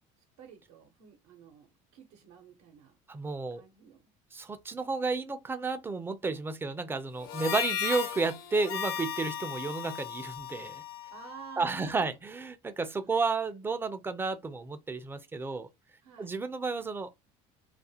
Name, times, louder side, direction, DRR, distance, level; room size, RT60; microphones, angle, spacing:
voice 1, 0.4-3.0 3.5-4.1 11.1-12.1 16.0-16.3, right 8 dB, 80° right, 0.7 m, -51 dB
voice 2, 3.1-3.6 4.3-10.8 11.6-15.7 16.2-17.1, right 4 dB, 15° right, 0.3 m, -32 dB
Harmonica, 7.2-11.8, left 9 dB, 70° left, 0.7 m, -36 dB
2.4 x 2.3 x 2.6 m
cardioid pair, 110°, 16 cm